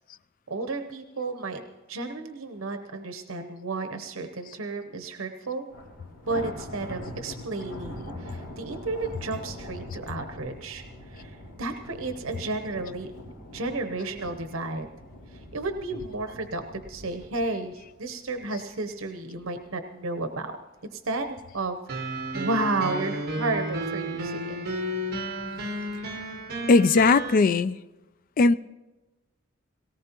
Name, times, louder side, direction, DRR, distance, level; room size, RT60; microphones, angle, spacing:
voice 1, 0.5-1.6 1.9-5.7 6.3-10.8 11.1-13.1 13.5-14.9 15.3-20.6 20.8-21.3 21.5-21.8 22.3-24.5, right 3 dB, 85° right, 6 dB, 0.9 m, -32 dB
Thunder, 5.7-19.0 19.4-19.7 20.1-20.2 21.0-21.6, left 1 dB, 65° left, 3.9 m, -43 dB
sound 1, 21.9-27.4, right 1 dB, 55° right, 1.4 m, -32 dB
voice 2, 26.7-27.8 28.4-28.5, left 3 dB, 45° left, 15 dB, 0.4 m, -18 dB
18.0 x 18.0 x 3.0 m, 1.1 s
head